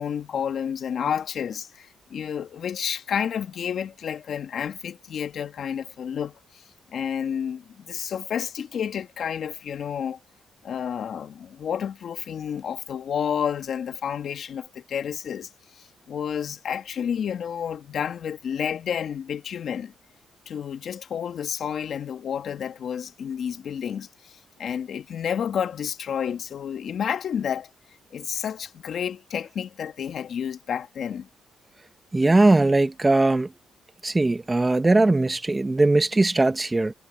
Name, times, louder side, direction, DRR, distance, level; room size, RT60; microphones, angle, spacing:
voice 1, 0.0-6.3 6.9-10.2 10.6-15.5 15.8-19.9 20.5-27.7 28.1-31.3, left 8 dB, 60° left, 2.1 m, -30 dB
voice 2, 32.1-33.5 34.0-36.9, right 2 dB, 20° right, 1.5 m, -20 dB
cardioid pair, 90°, 0 cm